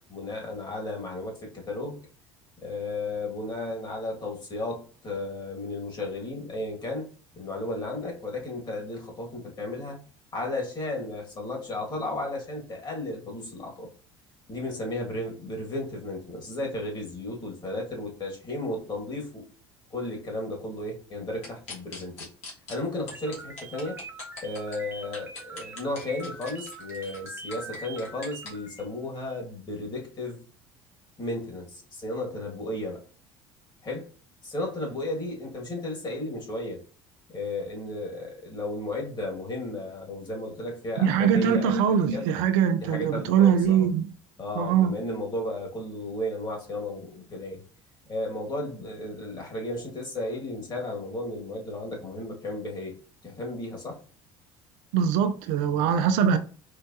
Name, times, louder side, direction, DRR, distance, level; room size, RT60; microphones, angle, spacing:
voice 1, 0.1-2.0 2.6-7.1 7.3-10.0 10.3-13.9 14.5-19.5 19.9-22.3 22.7-24.0 24.4-30.4 31.2-33.0 33.8-34.1 34.4-36.8 37.3-42.2 42.8-43.9 44.4-47.6 48.1-52.9 53.2-54.0, left 1 dB, 30° left, 2.0 m, -34 dB
sound 1, 21.4-22.7 23.1-24.8 25.1-28.5, left 3 dB, 50° left, 1.8 m, -41 dB
sound 2, 23.1-28.9, right 3 dB, 15° right, 0.9 m, -43 dB
voice 2, 41.0-44.1 44.6-44.9 54.9-56.4, right 8 dB, 60° right, 0.4 m, -22 dB
4.6 x 3.1 x 2.8 m
figure-of-eight pair, 60°, 14 cm